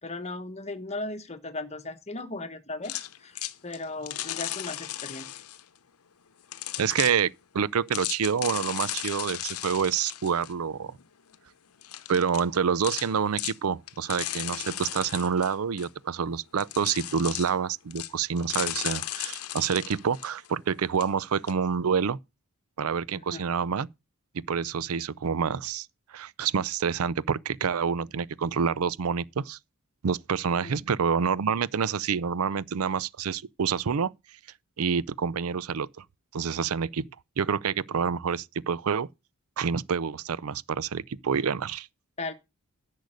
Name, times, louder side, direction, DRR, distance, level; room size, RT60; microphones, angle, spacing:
voice 1, 0.0-2.9 3.2-5.4 23.1-23.5 30.6-30.7 42.2-42.3, left 2 dB, 30° left, 1.2 m, -37 dB
sound 1, 2.8-5.6 6.5-7.2 7.9-10.5 11.0-11.1 11.3-11.4 11.8-12.6 12.8-13.1 13.4-13.6 13.9-15.9 16.6-17.5 17.9-18.1 18.4-20.7 21.0-21.1 21.5-21.6, left 13 dB, 85° left, 0.8 m, -35 dB
voice 2, 6.8-11.0 12.1-22.2 22.8-23.9 24.3-25.9 26.1-29.6 30.0-34.1 34.8-36.0 36.3-37.0 37.4-39.1 39.6-41.9, right 6 dB, 75° right, 0.5 m, -27 dB
10.5 x 6.5 x 6.4 m
head